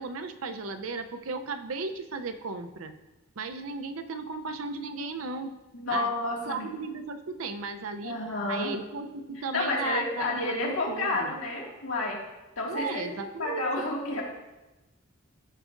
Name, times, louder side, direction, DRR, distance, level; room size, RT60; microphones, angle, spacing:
voice 1, 0.0-2.9 3.4-5.5 5.9-6.1 6.5-8.1 8.5-11.3 12.6-13.6, right 3 dB, 90° right, 8 dB, 0.6 m, -35 dB
voice 2, 5.7-6.7 8.0-8.7 9.4-12.2 12.6-13.0 13.4-14.2, left 2 dB, 85° left, -3 dB, 2.0 m, -30 dB
14.0 x 4.8 x 2.5 m, 1.0 s
head